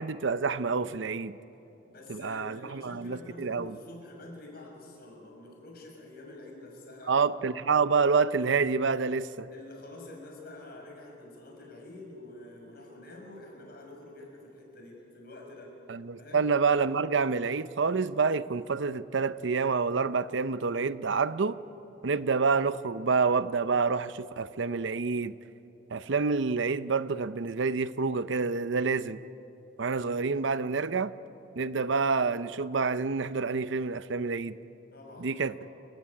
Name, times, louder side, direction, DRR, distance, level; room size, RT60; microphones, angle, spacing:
voice 1, 0.0-1.4 2.1-3.7 7.1-9.5 15.9-21.6 22.0-25.3 25.9-29.2 29.8-31.1 31.6-34.6 35.2-35.5, right 4 dB, 70° right, 0.6 m, -28 dB
voice 2, 1.9-7.3 9.5-15.7 16.2-16.4 34.9-35.7, left 2 dB, 50° left, 6.4 m, -47 dB
29.0 x 16.0 x 9.6 m
head